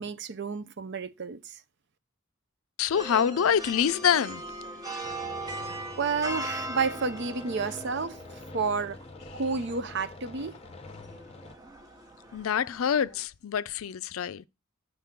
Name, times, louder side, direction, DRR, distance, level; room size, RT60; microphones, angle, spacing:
voice 1, 0.0-1.6 5.5-8.2 8.5-9.0 9.3-10.6, right 4 dB, 55° right, 0.6 m, -31 dB
voice 2, 2.8-4.4 12.3-14.4, left 8 dB, 80° left, 0.4 m, -26 dB
sound 1, 2.9-13.3, right 2 dB, 15° right, 1.0 m, -40 dB
sound 2, 5.0-11.5, left 3 dB, 30° left, 0.7 m, -46 dB
6.5 x 3.7 x 5.8 m
head